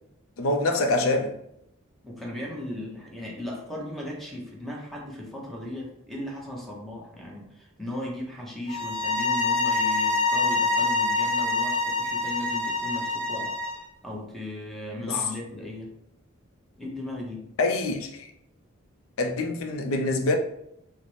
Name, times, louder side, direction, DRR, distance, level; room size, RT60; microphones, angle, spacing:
voice 1, 0.4-1.3 15.0-15.2 17.6-18.3 19.2-20.4, left 2 dB, 70° left, 0.4 m, -25 dB
voice 2, 2.0-13.5 14.0-15.9 16.8-17.5, left 1 dB, ahead, 0.7 m, -37 dB
sound 1, 8.7-13.8, left 3 dB, 35° left, 0.7 m, -25 dB
4.0 x 2.0 x 3.1 m
head